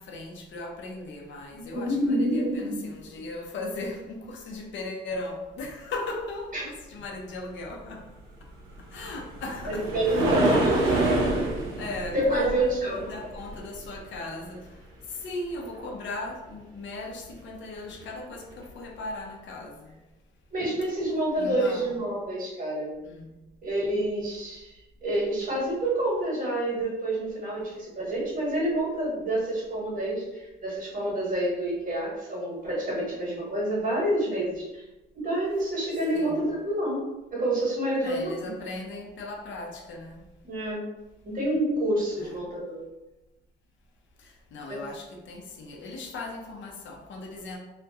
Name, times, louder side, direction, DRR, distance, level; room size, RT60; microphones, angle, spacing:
voice 1, 0.0-8.1 8.8-20.0 21.4-22.0 23.0-23.3 36.1-36.4 38.0-40.2 42.2-42.4 44.2-47.6, left 2 dB, 70° left, 1 dB, 0.5 m, -38 dB
voice 2, 1.5-2.8 6.5-6.6 9.7-10.8 12.1-13.0 20.5-22.9 23.6-24.7 25.0-34.8 35.1-37.0 37.3-38.3 40.4-40.8 41.2-42.8 44.7-44.8, right 1 dB, 45° right, -4 dB, 1.1 m, -28 dB
sound 1, 8.7-14.0 17.9-18.0 18.6-18.7, right 2 dB, 90° right, 0.5 m, -27 dB
2.3 x 2.1 x 2.6 m, 1.0 s
cardioid pair, 90°, 20 cm